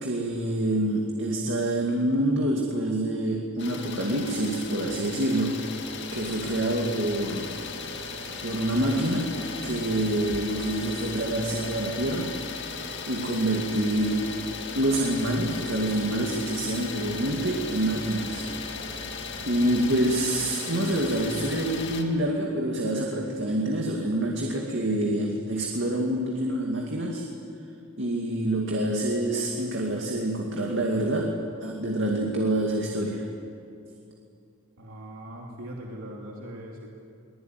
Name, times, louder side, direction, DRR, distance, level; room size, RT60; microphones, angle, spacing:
voice 1, 0.0-5.6 6.1-7.5 8.4-9.4 9.6-12.3 13.1-14.3 14.7-18.5 19.5-27.2 28.0-33.3, right 1 dB, 60° right, 0 dB, 2.4 m, -26 dB
Idling, 3.6-22.0, left 4 dB, 55° left, 2.2 m, -36 dB
voice 2, 34.8-36.9, right 1 dB, 85° right, -2 dB, 2.8 m, -40 dB
23.0 x 20.5 x 9.4 m, 2.5 s
head